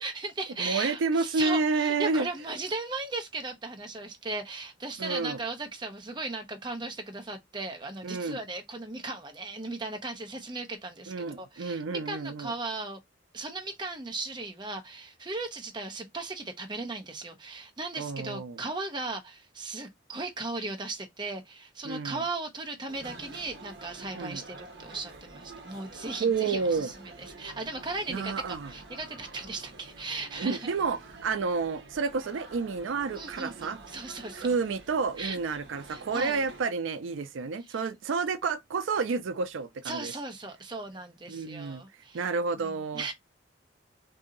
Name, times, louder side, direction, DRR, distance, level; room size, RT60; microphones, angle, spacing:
voice 1, 0.0-13.0 13.3-30.7 33.1-34.5 35.2-35.4 35.9-36.4 37.6-37.9 39.8-42.3 42.6-43.1, right 3 dB, 25° right, 0.6 m, -37 dB
voice 2, 0.6-2.3 5.0-5.4 8.0-8.4 11.1-12.5 18.0-18.6 21.8-22.2 24.2-24.4 26.2-26.9 28.1-28.7 30.4-33.8 34.3-40.1 41.3-41.8 42.1-43.1, right 4 dB, 80° right, 0.4 m, -30 dB
sound 1, 22.9-36.6, right 2 dB, 60° right, 0.9 m, -48 dB
2.7 x 2.6 x 3.8 m
head